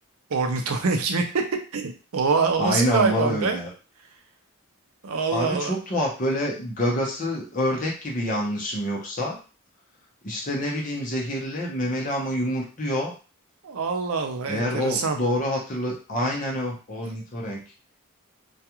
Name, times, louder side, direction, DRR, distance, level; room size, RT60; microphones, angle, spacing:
voice 1, 0.3-1.4 1.7-3.6 5.0-5.8 13.6-15.2, right 4 dB, 80° right, 5 dB, 0.5 m, -25 dB
voice 2, 2.6-3.7 5.3-9.4 10.2-13.1 14.5-17.6, equal, 35° left, -2 dB, 0.7 m, -27 dB
2.3 x 2.3 x 2.9 m, 0.35 s
head